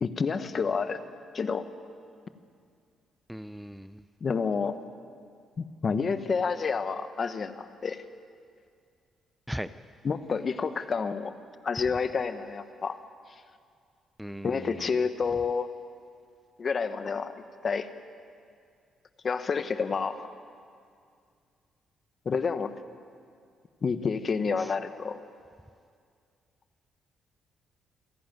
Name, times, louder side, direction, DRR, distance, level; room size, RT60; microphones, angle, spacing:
voice 1, 0.0-1.0 1.3-1.7 4.2-4.8 5.6-8.0 10.0-11.3 11.6-13.0 14.4-15.7 16.6-17.3 17.6-17.9 19.2-20.3 22.2-22.7 23.8-25.2, left 5 dB, 40° left, 11 dB, 1.1 m, -29 dB
voice 2, 3.3-4.0 9.5-9.7 14.2-15.0 24.6-24.7, equal, ahead, 12 dB, 0.5 m, -38 dB
29.5 x 11.0 x 9.2 m, 2.3 s
cardioid pair, 90°, 0 cm